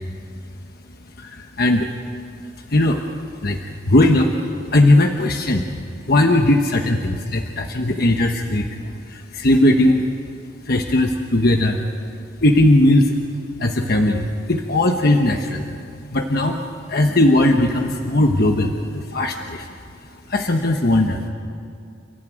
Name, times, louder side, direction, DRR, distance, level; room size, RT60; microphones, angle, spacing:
voice 1, 1.2-1.9 2.7-3.0 3.4-3.6 3.9-4.4 4.7-5.6 6.1-8.7 9.1-10.0 10.6-11.8 12.4-13.2 13.6-15.7 16.1-16.6 16.9-19.7 20.3-21.3, left 1 dB, 55° left, 3 dB, 1.3 m, -18 dB
29.5 x 15.0 x 9.3 m, 2.3 s
head